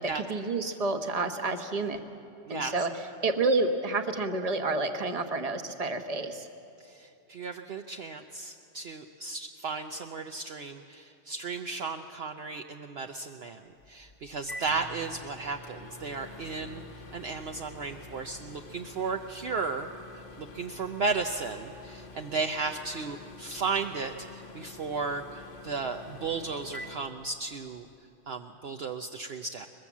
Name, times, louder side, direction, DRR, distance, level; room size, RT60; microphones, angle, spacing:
voice 1, 0.0-2.0 2.5-2.9 3.2-6.5, right 3 dB, 30° right, 7 dB, 1.3 m, -29 dB
voice 2, 6.8-13.6 13.9-16.8 17.1-19.9 20.4-27.9 28.3-29.7, right 4 dB, 60° right, 5 dB, 1.0 m, -34 dB
Microwave oven, 13.8-27.8, left 2 dB, 50° left, 1.1 m, -47 dB
23.0 x 21.0 x 7.3 m, 2.7 s
omnidirectional pair, 1.3 m